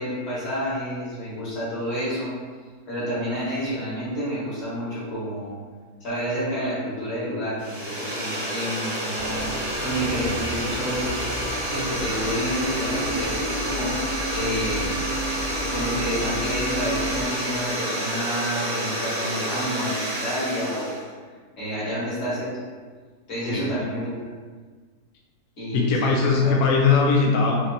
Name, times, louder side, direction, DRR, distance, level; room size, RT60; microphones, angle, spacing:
voice 1, 0.0-2.3 2.9-5.5 6.0-11.3 11.7-14.0 14.3-15.0 15.5-21.0 21.6-22.6 23.3-24.2 25.6-26.1 26.4-26.6, equal, 40° left, -9 dB, 1.6 m, -29 dB
sound 1, 7.6-21.0, right 1 dB, 45° right, 0.9 m, -29 dB
Bus, 9.1-17.2, equal, 65° right, 1.3 m, -33 dB
voice 2, 25.7-27.7, left 4 dB, 70° left, -1 dB, 0.8 m, -20 dB
4.3 x 2.8 x 2.6 m, 1.5 s
omnidirectional pair, 1.9 m